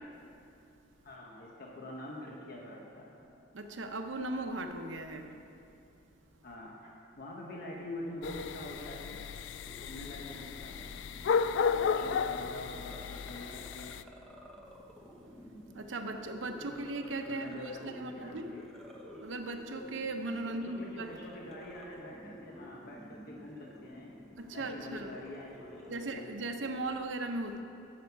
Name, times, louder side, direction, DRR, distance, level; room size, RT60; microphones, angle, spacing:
voice 1, 1.0-3.1 6.4-9.2 9.7-10.9 11.7-14.0 16.6-18.6 20.4-24.1 24.5-26.3, left 1 dB, 55° left, -2 dB, 1.1 m, -45 dB
voice 2, 3.5-5.3 15.7-18.5 19.2-21.2 24.4-25.1 25.9-27.6, right 2 dB, 90° right, 5 dB, 0.8 m, -38 dB
sound 1, 8.2-14.0, left 6 dB, 75° left, 0.3 m, -33 dB
sound 2, 9.7-26.9, left 1 dB, 5° left, 1.0 m, -51 dB
12.5 x 7.8 x 4.6 m, 2.6 s
head